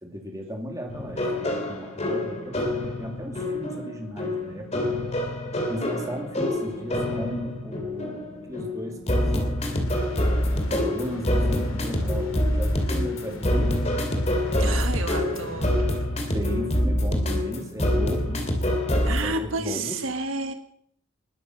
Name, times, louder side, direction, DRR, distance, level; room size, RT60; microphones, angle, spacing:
voice 1, 0.0-4.8 5.7-9.6 10.5-13.7 16.3-18.6 19.0-20.1, equal, 15° right, 2 dB, 2.7 m, -36 dB
sound 1, 0.9-19.2, left 1 dB, 30° left, 2.7 m, -26 dB
sound 2, 9.6-16.3, equal, 75° left, 2.4 m, -40 dB
voice 2, 14.6-16.0 19.1-20.5, right 3 dB, 70° right, 7 dB, 1.3 m, -30 dB
20.5 x 9.4 x 6.4 m, 0.64 s
head